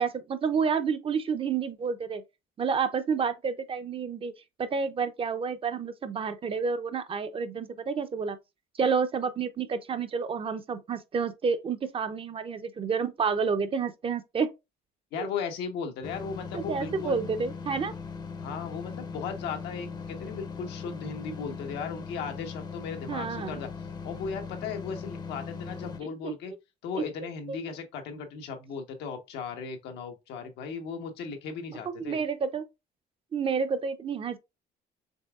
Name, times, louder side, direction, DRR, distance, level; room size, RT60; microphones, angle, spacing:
voice 1, 0.0-2.2 2.6-4.3 4.6-8.4 8.8-14.5 15.2-15.3 16.5-17.9 23.1-23.6 26.2-26.3 26.9-27.0 31.9-32.6 33.3-34.4, right 5 dB, 35° right, 0.5 m, -29 dB
voice 2, 15.1-17.2 18.4-23.7 24.0-26.5 26.8-32.2, left 5 dB, 85° left, 1.0 m, -36 dB
sound 1, 16.0-26.0, left 5 dB, 25° left, 0.6 m, -39 dB
5.4 x 3.4 x 2.3 m
cardioid pair, 110°, 17 cm